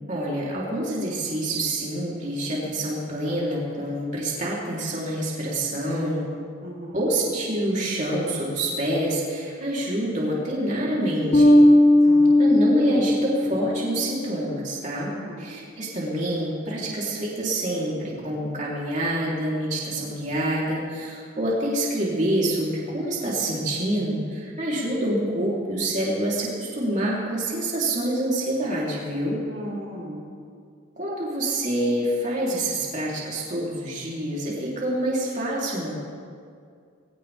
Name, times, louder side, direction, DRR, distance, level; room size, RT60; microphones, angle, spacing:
voice 1, 0.1-6.2 6.9-11.6 12.4-29.4 31.0-36.0, right 1 dB, 35° right, -5 dB, 3.4 m, -27 dB
voice 2, 6.6-7.1 12.0-12.4 15.1-15.5 29.5-30.3, right 1 dB, 50° right, -6 dB, 3.2 m, -38 dB
Bass guitar, 11.3-14.0, left 1 dB, 35° left, 1.1 m, -17 dB
21.5 x 17.0 x 3.5 m, 2.2 s
head